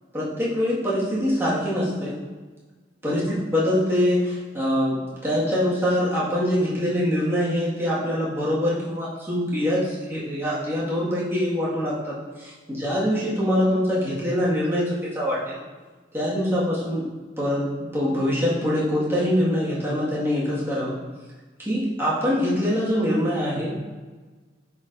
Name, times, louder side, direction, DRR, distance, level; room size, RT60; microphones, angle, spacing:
voice 1, 0.1-2.2 3.0-15.6 16.1-17.0 17.4-21.0 21.6-23.8, equal, 15° right, -8 dB, 1.7 m, -24 dB
10.0 x 4.3 x 2.6 m, 1.4 s
head